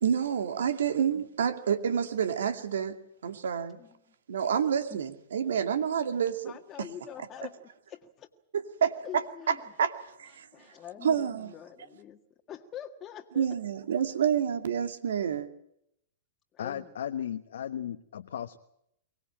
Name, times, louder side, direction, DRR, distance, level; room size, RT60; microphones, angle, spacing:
voice 1, 0.0-3.0 3.2-3.8 4.3-6.5 6.8-6.9 8.8-9.9 10.2-10.5 11.0-11.5 13.4-15.5, right 7 dB, 80° right, 9 dB, 2.3 m, -28 dB
voice 2, 6.4-8.3 9.0-9.7 10.3-12.2 12.5-13.5 13.9-14.0 16.5-17.2, left 10 dB, 30° left, 3 dB, 1.8 m, -45 dB
voice 3, 16.6-18.6, left 9 dB, 75° left, 8 dB, 1.2 m, -35 dB
24.0 x 18.5 x 8.9 m, 0.76 s
hypercardioid pair, 115°, 0 cm